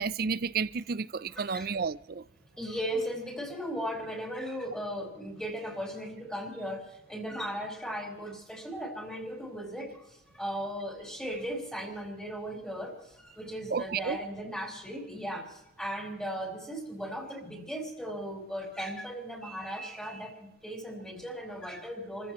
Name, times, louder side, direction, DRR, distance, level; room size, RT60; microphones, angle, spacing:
voice 1, 0.0-2.2 13.7-14.2, right 5 dB, 55° right, 0.5 m, -31 dB
voice 2, 1.3-1.7 2.6-22.3, equal, 5° left, 4.0 m, -37 dB
29.0 x 15.0 x 3.1 m
head